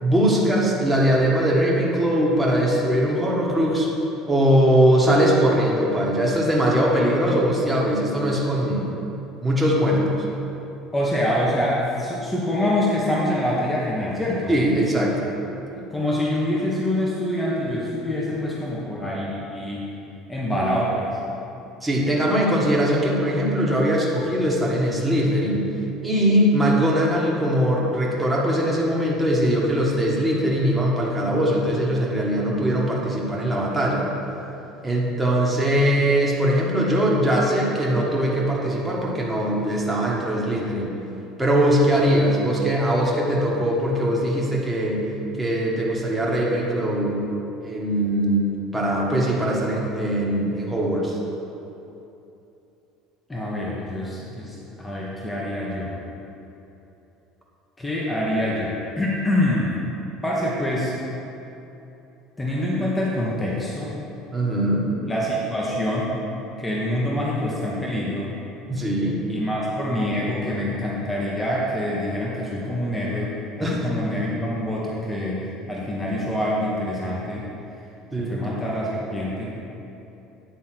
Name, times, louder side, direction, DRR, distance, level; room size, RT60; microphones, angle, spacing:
voice 1, 0.0-3.9 4.3-8.9 9.4-10.2 14.5-15.3 21.8-25.6 26.0-34.0 34.8-40.9 41.4-45.0 45.4-47.2 47.6-51.2 64.3-64.9 68.7-69.2 73.6-74.0 78.1-78.4, equal, 5° right, -4 dB, 1.5 m, -21 dB
voice 2, 10.9-14.5 15.7-19.8 20.3-21.2 53.3-55.9 57.8-59.8 60.2-61.0 62.4-64.0 65.1-66.1 66.6-68.3 69.3-75.4 75.7-77.5 78.2-79.7, left 1 dB, 10° left, -5 dB, 1.2 m, -25 dB
9.4 x 3.7 x 5.9 m, 2.9 s
supercardioid pair, 115°, 0 cm